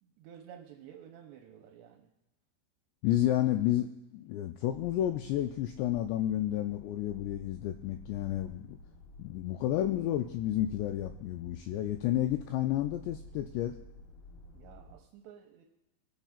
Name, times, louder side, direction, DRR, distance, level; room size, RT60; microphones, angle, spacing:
voice 1, 0.0-2.1 14.5-15.6, right 9 dB, 80° right, 2 dB, 2.8 m, -52 dB
voice 2, 3.0-8.8 9.2-13.8, left 13 dB, 85° left, 7 dB, 2.5 m, -31 dB
sound 1, 4.7-15.0, left 2 dB, 65° left, 2.9 m, -52 dB
21.5 x 9.1 x 2.4 m, 0.96 s
omnidirectional pair, 5.3 m